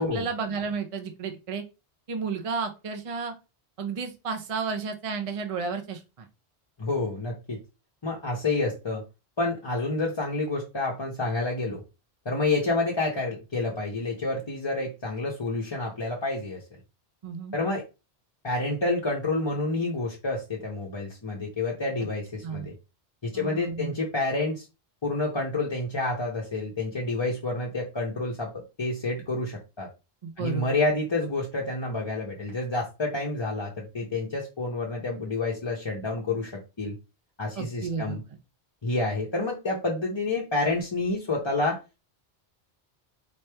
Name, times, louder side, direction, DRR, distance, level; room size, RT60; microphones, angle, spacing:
voice 1, 0.0-1.6 2.1-3.3 3.8-6.3 17.2-17.5 22.4-22.7 23.3-23.9 30.2-30.7 37.6-38.2, right 5 dB, 40° right, 5 dB, 0.5 m, -32 dB
voice 2, 6.8-7.6 8.0-9.0 9.4-11.8 12.2-16.6 17.5-17.8 18.4-22.7 23.2-24.7 25.0-29.9 30.4-37.0 37.4-38.2 38.8-41.8, left 2 dB, 30° left, -2 dB, 0.7 m, -29 dB
4.2 x 3.2 x 3.3 m, 0.28 s
omnidirectional pair, 1.1 m